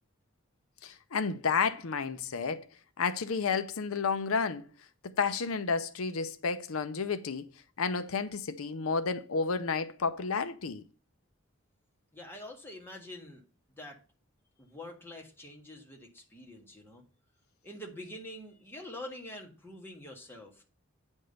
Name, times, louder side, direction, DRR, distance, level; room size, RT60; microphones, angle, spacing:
voice 1, 0.8-2.7 3.0-4.7 5.0-7.5 7.8-10.8, left 5 dB, 85° left, 0.7 m, -31 dB
voice 2, 12.1-13.4 13.8-14.0 14.6-17.0 17.6-20.6, left 1 dB, 10° left, 1.6 m, -46 dB
8.9 x 3.6 x 6.5 m
head